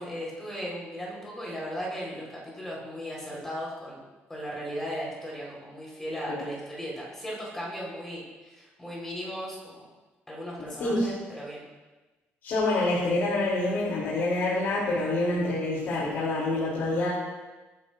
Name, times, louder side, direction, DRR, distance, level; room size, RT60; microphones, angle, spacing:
voice 1, 0.0-9.8 10.3-11.6, equal, 10° left, -4 dB, 4.3 m, -37 dB
voice 2, 12.4-17.1, left 2 dB, 50° left, -6 dB, 3.2 m, -26 dB
23.5 x 10.5 x 2.6 m, 1.2 s
cardioid pair, 175°, 4 cm